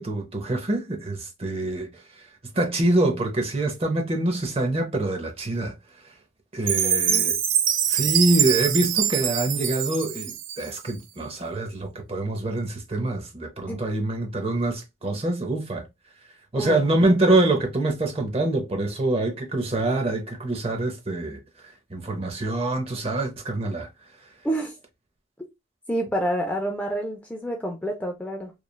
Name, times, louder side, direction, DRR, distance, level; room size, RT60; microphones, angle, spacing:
voice 1, 0.0-1.9 2.5-5.7 6.5-7.4 7.9-15.8 16.5-21.4 21.9-23.9, right 2 dB, 30° right, 0.7 m, -25 dB
Chime, 6.7-10.9, right 9 dB, 85° right, 0.5 m, -24 dB
voice 2, 6.8-7.3 13.7-13.8 16.5-16.8 24.4-24.7 25.9-28.5, right 1 dB, 10° left, 0.4 m, -28 dB
3.1 x 2.3 x 2.2 m
head